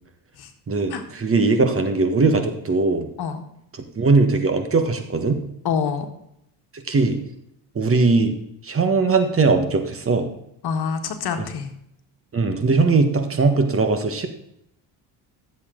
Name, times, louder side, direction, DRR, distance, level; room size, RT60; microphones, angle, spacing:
voice 1, 0.7-3.1 3.9-5.4 6.9-7.2 7.7-8.3 8.6-10.3 12.3-14.3, right 3 dB, 30° right, 6 dB, 1.7 m, -19 dB
voice 2, 5.6-6.1 10.6-11.7, left 6 dB, 65° left, 6 dB, 1.7 m, -26 dB
15.0 x 7.4 x 3.9 m, 0.78 s
cardioid pair, 100°, 42 cm